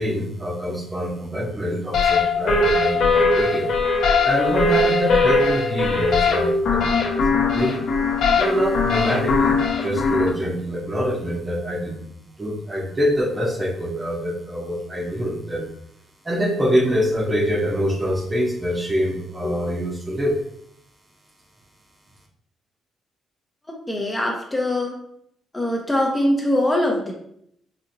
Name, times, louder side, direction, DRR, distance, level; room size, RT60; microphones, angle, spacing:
voice 1, 0.0-3.7 4.2-7.8 8.3-12.1 12.4-15.7 16.2-20.4, equal, 20° right, 0 dB, 0.8 m, -25 dB
sound 1, 1.9-10.3, left 3 dB, 70° left, 0.8 m, -20 dB
voice 2, 23.7-24.9 25.5-27.1, left 1 dB, 15° left, 0 dB, 0.7 m, -22 dB
4.2 x 2.8 x 2.6 m, 0.70 s
cardioid pair, 90°, 0 cm